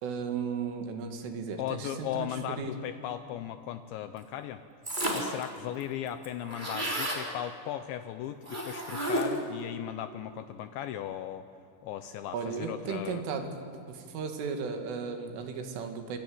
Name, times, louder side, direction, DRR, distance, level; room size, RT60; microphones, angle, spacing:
voice 1, 0.0-2.7 12.3-13.5 13.9-16.2, right 5 dB, 75° right, 6 dB, 4.5 m, -35 dB
voice 2, 1.6-4.6 5.1-11.5 11.8-13.2, left 11 dB, 80° left, 10 dB, 2.8 m, -37 dB
sound 1, 4.8-5.4 5.8-5.9 6.1-7.2 8.4-9.5, right 1 dB, 10° right, 3.0 m, -31 dB
27.0 x 26.5 x 7.9 m, 2.6 s
omnidirectional pair, 5.9 m